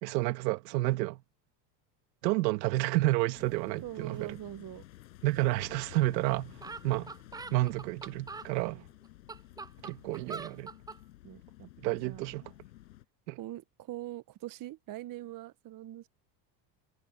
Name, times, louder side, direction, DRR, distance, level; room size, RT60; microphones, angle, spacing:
voice 1, 0.0-1.2 2.2-4.4 5.2-7.1 7.5-8.8 9.8-10.7 11.8-12.4 13.3-13.4, right 19 dB, 80° right, 2.0 m, -30 dB
sound 1, 3.3-13.0, left 15 dB, 85° left, 6.6 m, -53 dB
voice 2, 3.8-4.8 8.4-8.8 10.3-10.4 11.2-11.7 12.0-12.2 13.4-16.1, right 14 dB, 40° right, 1.1 m, -43 dB
sound 2, 5.9-6.0 6.3-6.4 6.6-8.5 9.0-11.0, right 4 dB, 10° right, 0.4 m, -43 dB
hypercardioid pair, 85°, 50 cm